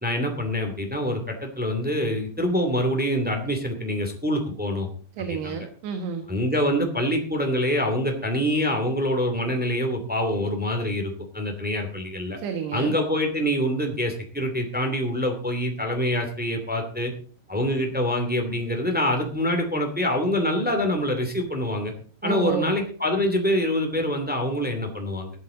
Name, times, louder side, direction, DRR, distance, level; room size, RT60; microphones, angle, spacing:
voice 1, 0.0-4.9 5.4-5.6 6.3-12.4 12.7-17.1 17.5-21.9 22.2-25.3, equal, 5° right, 3 dB, 1.1 m, -25 dB
voice 2, 5.2-6.3 12.4-13.0 22.2-22.7, right 7 dB, 75° right, 5 dB, 3.5 m, -30 dB
15.5 x 12.0 x 3.9 m, 0.44 s
omnidirectional pair, 5.1 m